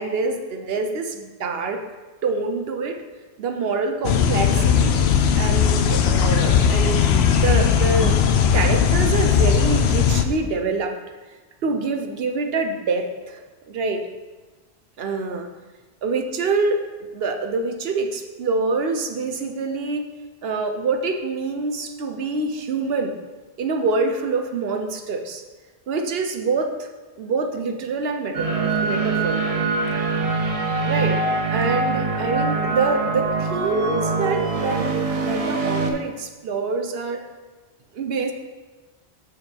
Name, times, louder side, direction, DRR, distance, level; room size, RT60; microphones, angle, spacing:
voice 1, 0.0-1.8 2.2-3.0 3.4-7.0 7.3-8.2 8.5-11.0 11.6-13.4 13.7-14.0 15.0-15.5 16.0-20.0 20.4-23.1 23.6-25.4 25.9-26.9 27.2-29.7 30.8-31.2 31.5-37.2 37.9-38.3, right 3 dB, 65° right, 5 dB, 0.9 m, -26 dB
sound 1, 4.0-10.2, left 7 dB, 75° left, 0.8 m, -18 dB
sound 2, 28.3-35.9, right 3 dB, 40° right, 0.6 m, -23 dB
7.3 x 6.6 x 3.4 m, 1.3 s
omnidirectional pair, 1.1 m